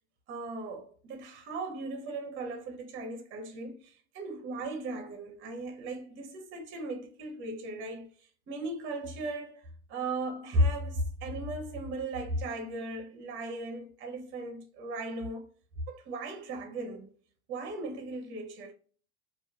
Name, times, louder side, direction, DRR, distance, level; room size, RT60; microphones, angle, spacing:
voice 1, 0.3-8.1 8.5-15.5 15.9-17.1 17.5-18.7, right 1 dB, 35° right, 0.7 m, -36 dB
2.9 x 2.3 x 2.3 m
supercardioid pair, 115°, 34 cm